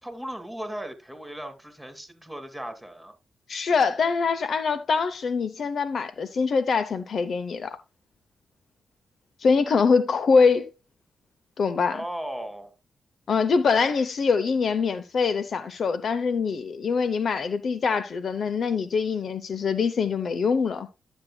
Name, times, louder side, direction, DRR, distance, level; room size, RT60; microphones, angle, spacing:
voice 1, 0.0-3.1 11.9-12.7, right 1 dB, ahead, 2.5 m, -36 dB
voice 2, 3.5-7.8 9.4-10.7 11.6-12.0 13.3-20.9, left 5 dB, 65° left, 0.7 m, -24 dB
11.5 x 8.1 x 2.3 m
supercardioid pair, 45°, 0 cm